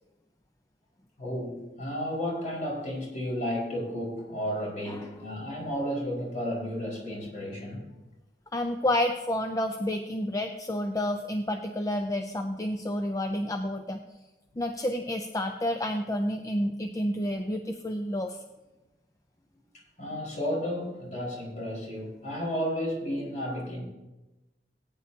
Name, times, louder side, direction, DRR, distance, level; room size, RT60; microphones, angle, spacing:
voice 1, 1.2-7.9 19.7-23.8, equal, 45° left, -4 dB, 4.9 m, -33 dB
voice 2, 8.5-14.0 14.6-18.4, left 1 dB, 20° left, 5 dB, 0.5 m, -30 dB
19.0 x 9.7 x 2.8 m, 1.1 s
head